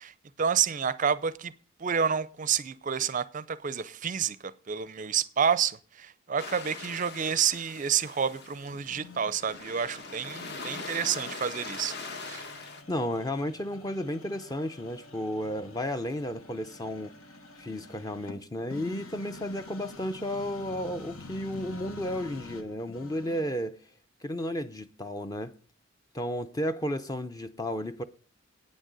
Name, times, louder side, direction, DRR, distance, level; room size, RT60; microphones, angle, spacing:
voice 1, 0.0-1.5 1.8-12.0 12.3-12.4, right 7 dB, 35° right, 0.4 m, -29 dB
sound 1, 6.4-12.8, left 4 dB, 50° left, 1.1 m, -41 dB
sound 2, 8.7-23.7, left 2 dB, 85° left, 1.3 m, -48 dB
voice 2, 12.9-17.1 17.6-23.8 24.2-25.5 26.1-28.0, left 1 dB, 15° left, 0.5 m, -33 dB
9.0 x 6.4 x 8.0 m
head